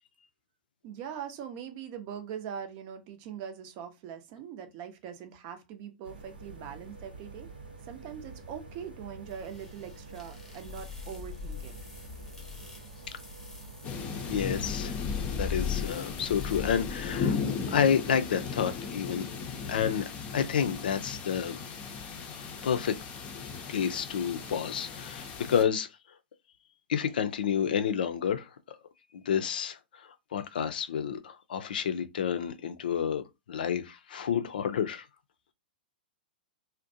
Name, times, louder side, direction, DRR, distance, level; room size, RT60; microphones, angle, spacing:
voice 1, 0.8-7.5 7.9-11.7, right 8 dB, 45° right, 0.6 m, -42 dB
sound 1, 6.0-14.9, right 3 dB, 85° right, 0.9 m, -48 dB
sound 2, 9.3-17.2, left 6 dB, 10° left, 0.9 m, -39 dB
sound 3, 13.8-25.6, left 5 dB, 25° left, 0.5 m, -36 dB
voice 2, 14.3-14.9 15.3-17.4 17.7-19.2 19.7-20.1 20.3-21.6 22.6-23.0 23.7-25.9 26.9-28.8 29.1-35.1, left 8 dB, 70° left, 0.4 m, -29 dB
2.5 x 2.1 x 2.6 m
hypercardioid pair, 120°, 5 cm